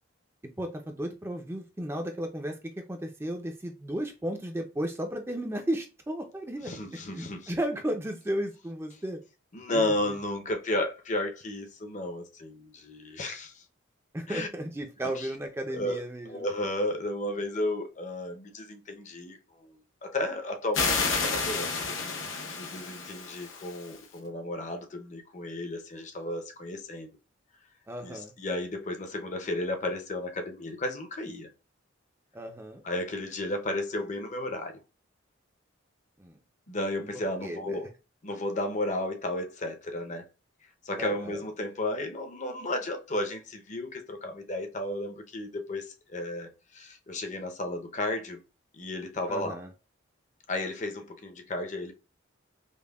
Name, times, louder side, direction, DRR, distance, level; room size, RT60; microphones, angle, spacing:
voice 1, 0.6-6.7 7.1-9.2 9.7-10.2 14.1-16.4 27.9-28.3 32.3-32.8 36.2-36.4 37.4-37.8 41.0-41.4 49.3-49.7, right 1 dB, 10° right, 0.4 m, -34 dB
voice 2, 6.6-7.5 9.5-13.6 14.3-14.5 15.2-15.3 15.7-27.1 28.0-31.5 32.8-34.8 36.7-37.9 38.2-40.2 40.8-48.4 48.7-49.6 50.5-51.9, left 1 dB, 40° left, 0.7 m, -33 dB
sound 1, 20.7-24.0, left 4 dB, 85° left, 0.8 m, -30 dB
5.2 x 2.2 x 2.3 m
head